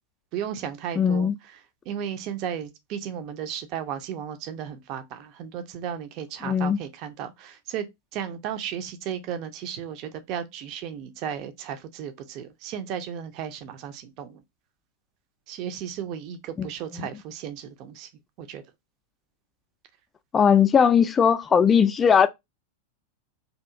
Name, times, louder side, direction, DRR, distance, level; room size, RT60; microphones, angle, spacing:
voice 1, 0.3-1.3 1.9-7.8 8.1-14.4 15.5-18.1 18.4-18.6, right 9 dB, 40° right, 0.5 m, -34 dB
voice 2, 1.0-1.4 6.4-6.8 16.6-16.7 16.9-17.1 20.3-22.3, left 7 dB, 20° left, 0.3 m, -19 dB
2.8 x 2.4 x 3.5 m
figure-of-eight pair, 90°, 0 cm